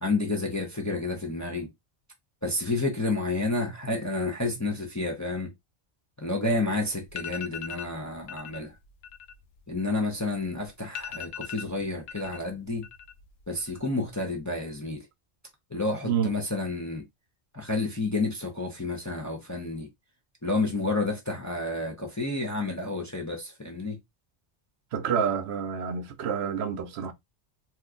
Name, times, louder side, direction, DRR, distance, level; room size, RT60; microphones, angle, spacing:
voice 1, 0.0-1.7 2.4-5.5 6.2-8.7 9.7-12.9 13.5-15.1 15.7-17.0 17.5-19.9 20.4-24.0, left 2 dB, 20° left, 0.5 m, -30 dB
sound 1, 6.6-6.7 7.1-7.9 8.3-8.6 8.9-10.4 10.6-10.7 10.9-12.4 12.7-13.3 13.6-14.1, left 8 dB, 90° left, 0.9 m, -39 dB
voice 2, 24.9-27.1, right 7 dB, 70° right, 0.8 m, -28 dB
2.9 x 2.2 x 3.6 m
omnidirectional pair, 1.2 m